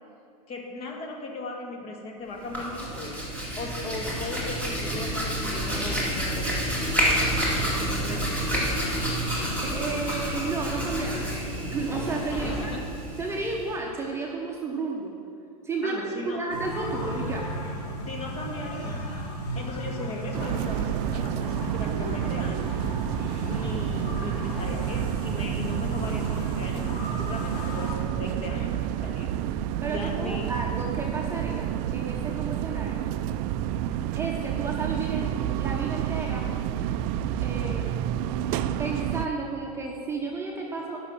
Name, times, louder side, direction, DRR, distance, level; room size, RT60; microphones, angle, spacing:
voice 1, 0.5-3.2 3.6-6.9 7.6-8.8 12.3-12.8 15.8-16.4 18.1-19.1 19.6-22.6 23.5-29.3 29.9-30.5, left 2 dB, 30° left, 1 dB, 1.8 m, -37 dB
Hands, 2.3-13.8, equal, 5° left, 2.5 m, -29 dB
voice 2, 9.6-11.3 11.7-12.8 13.2-15.1 15.6-17.5 29.8-33.0 34.1-35.3 35.6-36.4 37.4-38.0 38.8-41.0, right 3 dB, 15° right, -1 dB, 1.0 m, -32 dB
sound 1, 16.5-28.0, right 1 dB, 85° left, 2.8 m, -35 dB
sound 2, 20.3-39.3, right 11 dB, 40° right, 0.4 m, -29 dB
11.5 x 6.2 x 5.8 m, 2.5 s
hypercardioid pair, 130°, 20 cm